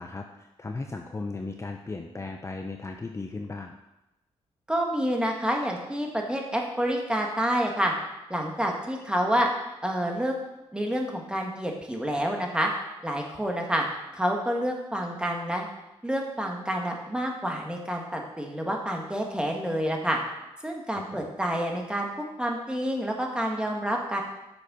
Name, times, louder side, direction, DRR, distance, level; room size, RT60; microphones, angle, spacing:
voice 1, 0.0-3.7 20.9-21.3, left 3 dB, 25° left, 3 dB, 0.7 m, -36 dB
voice 2, 4.7-7.9 8.3-9.5 9.8-10.4 10.7-12.7 13.0-13.9 14.1-15.7 16.0-20.2 20.6-22.1 22.4-24.2, equal, 10° right, 1 dB, 1.9 m, -28 dB
7.9 x 6.5 x 5.6 m, 0.95 s
cardioid pair, 85°, 11 cm